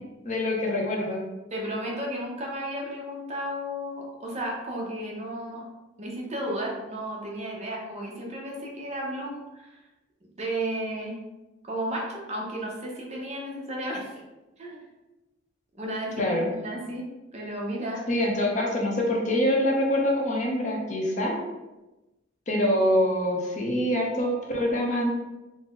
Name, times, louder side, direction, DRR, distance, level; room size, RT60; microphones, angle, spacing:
voice 1, 0.2-1.2 16.2-16.5 18.1-21.4 22.5-25.1, left 1 dB, 40° left, -1 dB, 0.7 m, -25 dB
voice 2, 1.5-5.6 6.0-9.8 10.3-11.2 11.6-14.1 14.6-14.8 15.7-18.0, right 1 dB, 35° right, -2 dB, 0.7 m, -33 dB
3.8 x 2.0 x 3.6 m, 1.0 s
head